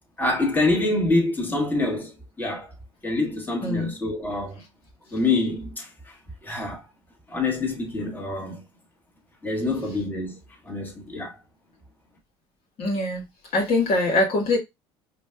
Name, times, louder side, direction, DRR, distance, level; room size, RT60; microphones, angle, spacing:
voice 1, 0.2-2.7 3.0-4.6 5.1-6.2 6.4-6.8 7.3-8.6 9.4-10.4 10.6-11.4, left 2 dB, 15° left, 1.6 m, -26 dB
voice 2, 3.6-3.9 12.8-13.2 13.5-14.6, left 2 dB, 50° left, 1.5 m, -23 dB
5.0 x 2.5 x 2.2 m
hypercardioid pair, 65°, 13 cm